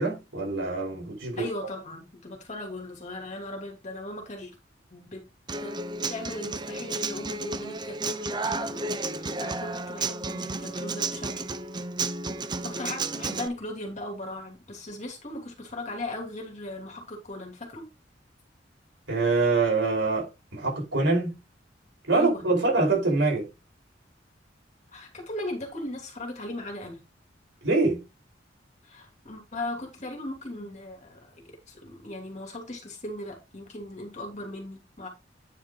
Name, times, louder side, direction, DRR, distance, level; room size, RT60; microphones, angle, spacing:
voice 1, 0.0-1.4 19.1-21.4 22.1-23.5 27.6-28.0, right 3 dB, 80° right, 5.1 m, -25 dB
voice 2, 1.4-4.5 4.9-5.2 5.6-5.8 6.1-11.4 12.6-17.8 22.1-22.4 24.9-27.0 28.8-35.1, left 1 dB, 40° left, 2.9 m, -38 dB
Human voice / Acoustic guitar, 5.5-13.5, right 3 dB, 25° right, 0.5 m, -32 dB
9.6 x 5.1 x 3.9 m
head